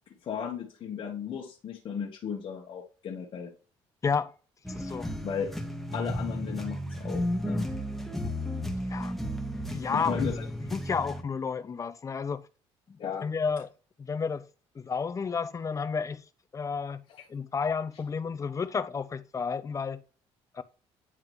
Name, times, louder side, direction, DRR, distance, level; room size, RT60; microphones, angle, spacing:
voice 1, 0.2-3.5 5.2-5.5 5.9-7.7 9.8-10.5 13.0-13.3 17.1-17.2, left 7 dB, 50° left, 1.4 m, -35 dB
sound 1, 4.6-11.2, equal, ahead, 1.4 m, -33 dB
voice 2, 4.7-5.1 8.9-9.1 9.7-10.3 10.7-12.4 12.9-13.7 14.0-14.4 14.8-16.2 16.5-17.0 17.3-20.0 20.5-20.6, left 5 dB, 30° left, 0.6 m, -31 dB
9.7 x 3.6 x 3.2 m
cardioid pair, 95°, 11 cm